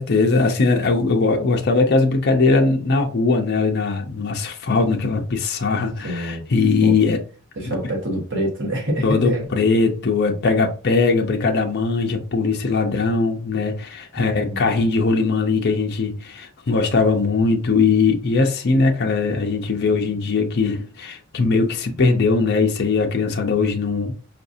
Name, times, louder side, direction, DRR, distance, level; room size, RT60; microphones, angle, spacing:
voice 1, 0.0-7.2 7.6-7.8 9.0-24.1, left 4 dB, 50° left, 0.6 m, -20 dB
voice 2, 6.0-6.4 6.8-7.1 7.5-9.5 14.2-14.6, equal, 55° right, 1.3 m, -26 dB
4.7 x 2.6 x 2.6 m
head